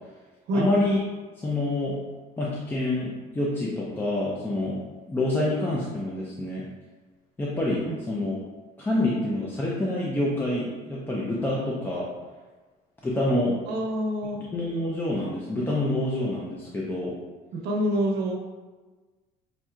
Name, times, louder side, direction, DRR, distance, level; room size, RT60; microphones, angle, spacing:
voice 1, 0.5-1.0 1.4-2.0 2.4-6.7 7.4-8.4 8.8-12.1 13.0-13.6 14.5-17.1, left 1 dB, 15° left, -6 dB, 0.5 m, -27 dB
voice 2, 13.7-14.4 17.6-18.4, equal, 85° right, 0 dB, 0.8 m, -26 dB
5.8 x 2.7 x 2.3 m, 1.3 s
cardioid pair, 155°, 16 cm